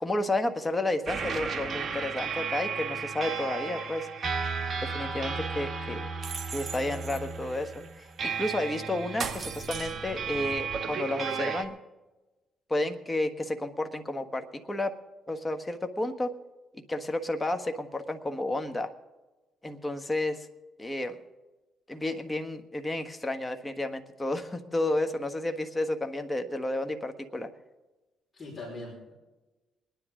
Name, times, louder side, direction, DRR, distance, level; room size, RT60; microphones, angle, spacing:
voice 1, 0.0-4.1 4.8-6.1 6.5-7.7 8.2-11.7 12.7-14.9 15.3-16.3 16.9-18.9 19.6-20.5 20.8-21.2 21.9-27.5, left 1 dB, 15° left, 7 dB, 1.3 m, -31 dB
sound 1, 1.1-11.6, right 5 dB, 45° right, 1.4 m, -34 dB
voice 2, 4.9-5.4 28.3-29.1, left 2 dB, 35° left, -2 dB, 4.9 m, -43 dB
24.0 x 10.5 x 3.7 m, 1.1 s
cardioid pair, 90°, 0 cm